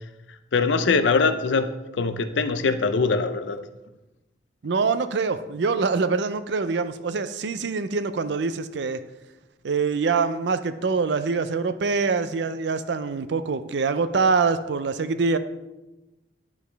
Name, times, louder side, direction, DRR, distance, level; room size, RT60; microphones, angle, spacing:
voice 1, 0.5-3.7, left 4 dB, 90° left, 10 dB, 0.5 m, -22 dB
voice 2, 4.6-9.0 9.6-15.4, right 4 dB, 70° right, 11 dB, 0.5 m, -24 dB
10.5 x 4.8 x 3.3 m, 1.0 s
head